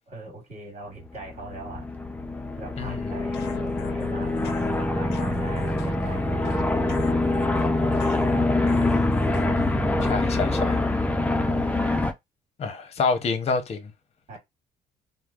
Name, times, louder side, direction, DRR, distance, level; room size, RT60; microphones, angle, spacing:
voice 1, 0.1-1.9 2.6-7.0 7.8-9.0 11.5-11.9 14.3-14.4, right 3 dB, 40° right, 1.5 m, -42 dB
sound 1, 1.1-12.1, left 2 dB, 10° left, 0.4 m, -25 dB
voice 2, 2.8-3.1 10.0-10.8 12.6-13.9, left 4 dB, 40° left, 0.7 m, -27 dB
sound 2, 3.3-10.4, left 12 dB, 85° left, 0.4 m, -41 dB
3.1 x 2.0 x 2.4 m
cardioid pair, 110°, 17 cm